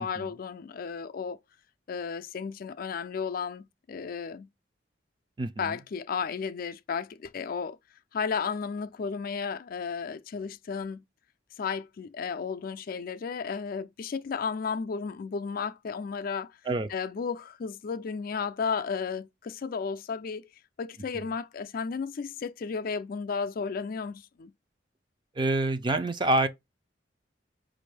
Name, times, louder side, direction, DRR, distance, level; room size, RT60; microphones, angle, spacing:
voice 1, 0.0-1.4 1.9-4.5 5.6-7.8 8.1-11.0 11.6-16.6 16.9-20.4 20.8-24.5, left 5 dB, 50° left, 0.4 m, -33 dB
voice 2, 5.4-5.8 16.7-16.9 21.1-21.2 25.4-26.5, right 2 dB, 25° right, 0.4 m, -27 dB
5.2 x 2.6 x 3.2 m
head